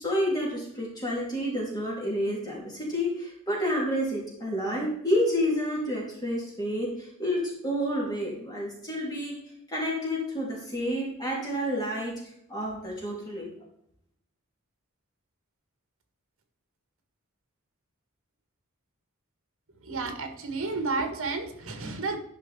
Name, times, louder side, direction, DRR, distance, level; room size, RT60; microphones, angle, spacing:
voice 1, 0.0-9.4 9.7-12.2 12.5-13.5, equal, 20° left, -3 dB, 3.0 m, -29 dB
voice 2, 19.8-22.2, right 3 dB, 65° right, 5 dB, 1.7 m, -31 dB
11.5 x 5.5 x 4.3 m, 0.70 s
head